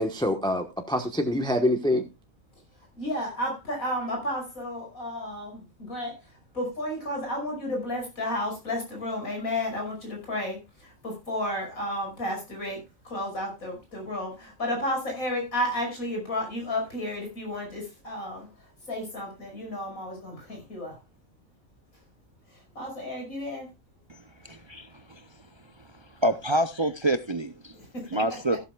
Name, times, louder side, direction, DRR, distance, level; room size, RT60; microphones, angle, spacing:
voice 1, 0.0-2.0, left 1 dB, 5° left, 5 dB, 1.0 m, -25 dB
voice 2, 2.9-21.0 22.5-23.7 27.7-28.4, left 1 dB, 90° left, 1 dB, 6.0 m, -32 dB
voice 3, 24.1-25.3 26.2-27.7 28.1-28.6, right 1 dB, 45° right, 10 dB, 0.3 m, -27 dB
14.5 x 12.5 x 2.3 m, 0.25 s
omnidirectional pair, 1.4 m